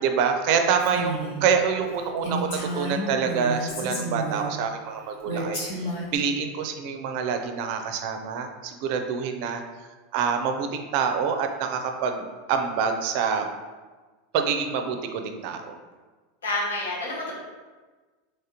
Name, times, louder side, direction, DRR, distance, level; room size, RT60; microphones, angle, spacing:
voice 1, 0.0-9.6 10.1-13.5 14.3-15.8, right 6 dB, 60° right, 5 dB, 0.4 m, -26 dB
Female speech woman speaking, 0.8-1.4 1.8-1.9 2.2-4.5 5.2-6.2, right 1 dB, 70° left, 1.1 m, -31 dB
voice 2, 16.4-17.3, left 2 dB, 85° left, -3 dB, 0.7 m, -28 dB
3.5 x 3.1 x 2.8 m, 1.3 s
hypercardioid pair, 95°, 0 cm